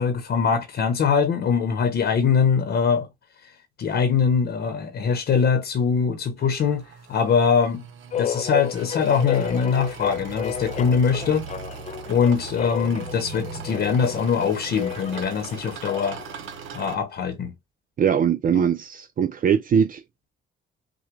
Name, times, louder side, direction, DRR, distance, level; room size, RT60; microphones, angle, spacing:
voice 1, 0.0-3.1 3.4-3.5 3.8-7.8 8.1-11.5 12.1-16.2 16.7-17.5 18.5-18.6, left 6 dB, 60° left, 1.0 m, -22 dB
sound 1, 6.4-17.0, right 6 dB, 80° right, 1.0 m, -39 dB
sound 2, 8.1-16.3, left 9 dB, 35° left, 0.4 m, -32 dB
voice 2, 18.0-20.0, right 8 dB, 45° right, 0.4 m, -21 dB
6.1 x 2.3 x 3.2 m
cardioid pair, 90°, 20 cm